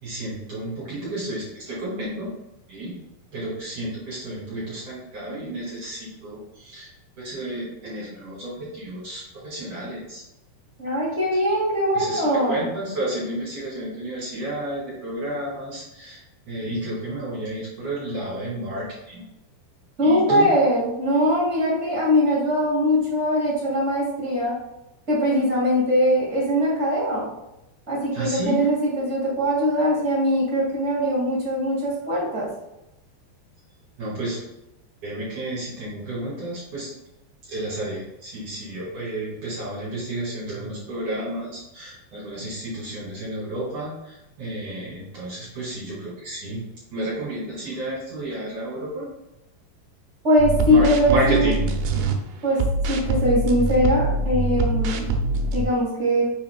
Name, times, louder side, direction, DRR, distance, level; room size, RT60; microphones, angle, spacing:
voice 1, 0.0-2.3 2.7-2.9 3.3-6.9 7.2-10.2 11.3-11.4 11.9-16.2 16.5-19.3 20.0-20.5 28.1-28.7 34.0-34.4 35.0-36.9 37.5-46.6 46.9-49.1 50.7-51.6, right 1 dB, 55° right, -7 dB, 3.1 m, -31 dB
voice 2, 10.8-12.6 20.0-24.5 25.1-27.3 27.9-32.5 50.2-51.5 52.4-55.0 55.5-56.2, equal, 30° right, -6 dB, 1.3 m, -21 dB
sound 1, 50.4-52.1 52.5-55.6, right 2 dB, 80° right, 2.6 m, -24 dB
7.2 x 5.7 x 2.3 m, 0.89 s
omnidirectional pair, 4.7 m